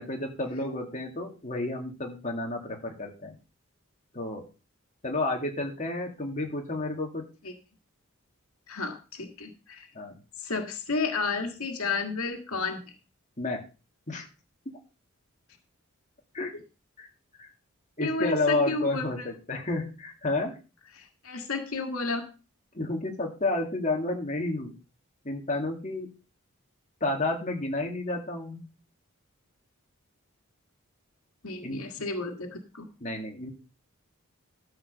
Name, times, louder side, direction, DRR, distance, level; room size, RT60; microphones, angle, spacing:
voice 1, 0.0-3.4 4.1-4.4 5.0-7.2 9.9-10.2 13.4-13.6 14.1-14.2 16.3-16.5 17.0-17.1 17.4-17.5 18.0-20.5 22.7-24.7 25.2-26.1 27.0-28.7 31.6-31.8 33.0-33.5, left 2 dB, 35° left, 1 dB, 2.3 m, -31 dB
voice 2, 8.7-9.9 10.4-12.8 18.0-19.3 21.0-22.3 31.4-32.9, left 4 dB, 85° left, 5 dB, 2.0 m, -32 dB
13.0 x 5.1 x 6.7 m, 0.32 s
head